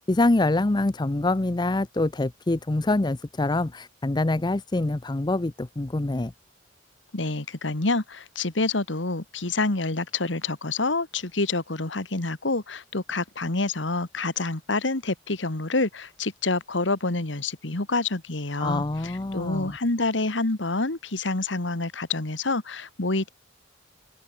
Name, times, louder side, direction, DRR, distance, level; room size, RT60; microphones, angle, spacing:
voice 1, 0.1-6.3 18.6-19.8, left 2 dB, 25° left, 0.6 m, -25 dB
voice 2, 7.1-23.3, left 3 dB, 75° left, 2.0 m, -27 dB
head